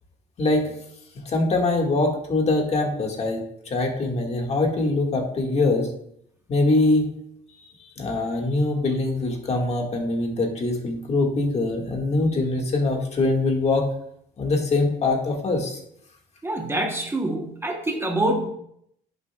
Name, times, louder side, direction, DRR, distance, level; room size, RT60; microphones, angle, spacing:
voice 1, 0.4-0.7 1.2-5.9 6.5-7.0 8.0-13.9 14.4-15.8, left 2 dB, 40° left, 1 dB, 1.8 m, -23 dB
voice 2, 16.4-18.5, right 1 dB, 15° right, 2 dB, 1.0 m, -25 dB
10.5 x 7.0 x 2.3 m, 0.72 s
cardioid pair, 110°, 17 cm